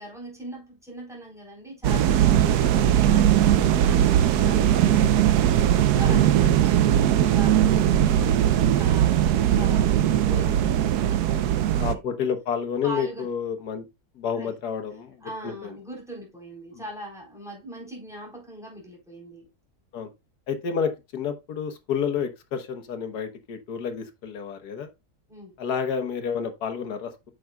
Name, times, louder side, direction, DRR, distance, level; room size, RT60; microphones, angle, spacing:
voice 1, 0.0-5.6 5.9-9.3 9.5-12.0 12.8-13.3 14.3-14.5 15.2-19.5 25.3-25.6, right 1 dB, ahead, 3.6 m, -41 dB
sound 1, 1.8-11.9, right 11 dB, 85° right, 1.2 m, -20 dB
voice 2, 4.8-5.4 9.6-9.7 10.3-10.6 11.8-13.9 14.2-15.7 16.7-16.8 19.9-20.1 20.5-24.9 25.6-27.3, left 7 dB, 85° left, 1.6 m, -30 dB
8.4 x 6.3 x 2.2 m
omnidirectional pair, 1.6 m